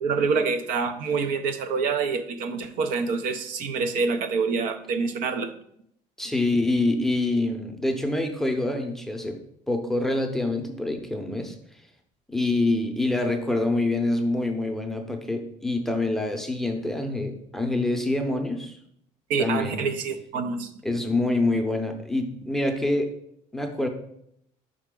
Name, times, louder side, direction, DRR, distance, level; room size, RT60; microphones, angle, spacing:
voice 1, 0.0-5.5 19.3-20.8, right 5 dB, 80° right, 9 dB, 0.6 m, -26 dB
voice 2, 6.2-9.4 9.7-11.5 12.3-18.8 19.4-19.9 20.8-23.1 23.5-23.9, left 2 dB, 5° left, 3 dB, 0.6 m, -26 dB
5.6 x 4.9 x 3.7 m, 0.71 s
cardioid pair, 145°, 14 cm